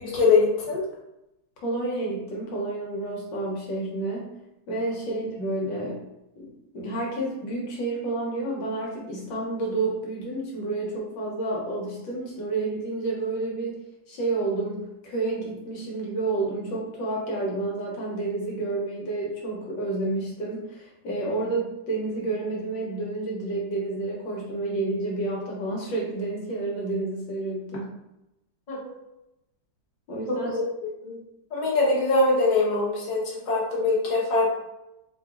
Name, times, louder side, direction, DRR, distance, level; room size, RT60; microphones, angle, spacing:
voice 1, 0.0-0.8 5.1-5.2 28.7-28.9 30.3-30.6 31.0-31.2 31.5-34.5, left 3 dB, 30° left, -5 dB, 1.0 m, -23 dB
voice 2, 1.6-4.3 4.7-6.0 6.4-13.7 14.1-27.9 30.1-30.5, right 2 dB, 80° left, -3 dB, 1.7 m, -30 dB
4.0 x 3.3 x 2.5 m, 0.91 s
omnidirectional pair, 2.0 m